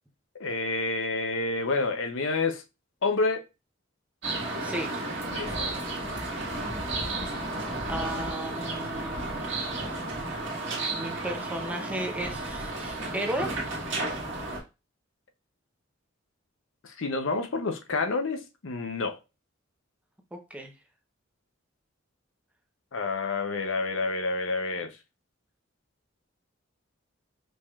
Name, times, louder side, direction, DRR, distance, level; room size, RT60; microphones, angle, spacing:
voice 1, 0.4-2.6 3.0-3.4 5.3-5.8 16.8-19.2 22.9-24.9, left 3 dB, 70° left, 0.6 m, -29 dB
sound 1, 4.2-14.6, right 2 dB, 60° right, 1.6 m, -33 dB
voice 2, 4.6-4.9 7.9-9.3 10.9-13.5 20.3-20.7, right 1 dB, 5° right, 0.6 m, -34 dB
5.1 x 3.5 x 2.3 m
head